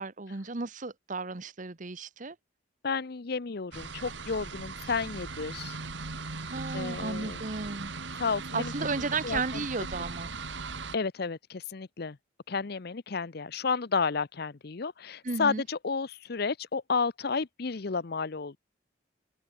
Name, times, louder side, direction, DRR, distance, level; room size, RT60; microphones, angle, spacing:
voice 1, 0.0-2.4 6.5-7.9 8.5-10.3 15.2-15.6, right 4 dB, 40° right, 1.0 m, -34 dB
voice 2, 2.8-5.8 6.7-7.4 8.2-8.7 9.2-9.7 10.9-12.2 12.5-18.6, left 5 dB, 55° left, 0.7 m, -32 dB
sound 1, 3.7-11.0, right 3 dB, 65° right, 2.0 m, -39 dB
head